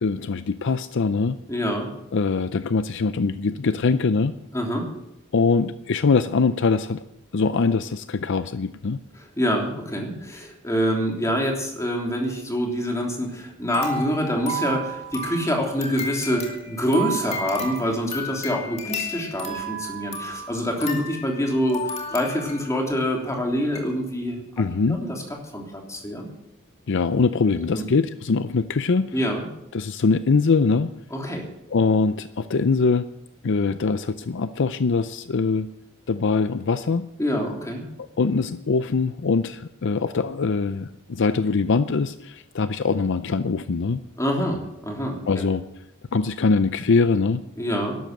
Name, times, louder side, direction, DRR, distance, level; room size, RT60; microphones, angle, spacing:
voice 1, 0.0-1.4 2.1-4.4 5.3-7.0 7.3-9.0 24.6-25.0 26.9-29.1 29.7-30.9 31.7-33.0 33.4-35.7 36.1-37.1 38.2-44.0 45.3-45.6 46.1-47.4, left 4 dB, 60° left, 12 dB, 0.5 m, -22 dB
voice 2, 1.5-1.9 4.5-4.9 9.2-24.6 24.9-25.2 25.5-26.3 27.7-27.9 29.1-29.4 31.1-31.4 37.2-37.8 44.2-45.4 47.5-48.0, equal, 15° left, 0 dB, 3.2 m, -26 dB
sound 1, 13.7-22.9 23.3-23.4 23.8-23.9, equal, 30° left, 2.5 m, -33 dB
12.5 x 12.0 x 7.9 m, 0.82 s
head